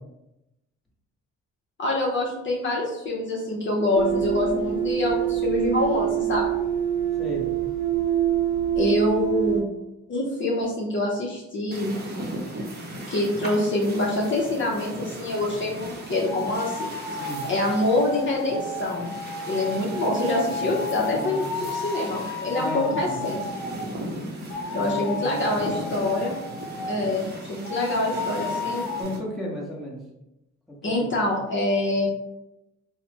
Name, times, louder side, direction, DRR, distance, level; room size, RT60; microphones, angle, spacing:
voice 1, 1.8-6.7 8.7-9.7 10.1-11.9 13.1-16.9 17.5-19.1 19.5-23.4 24.7-26.4 26.9-28.9 30.8-32.1, left 2 dB, 40° left, -3 dB, 0.6 m, -25 dB
sound 1, 3.9-9.6, right 10 dB, 70° right, 0.7 m, -25 dB
sound 2, 11.7-29.2, right 1 dB, 35° right, 0.7 m, -37 dB
sound 3, 16.3-23.9 24.5-27.2 27.6-29.0, left 2 dB, 85° left, 0.6 m, -33 dB
voice 2, 21.1-21.6 22.5-23.2 24.8-25.9 29.0-30.0 30.7-31.2, equal, ahead, -5 dB, 0.9 m, -34 dB
3.1 x 2.0 x 2.8 m, 0.91 s
cardioid pair, 90°, 30 cm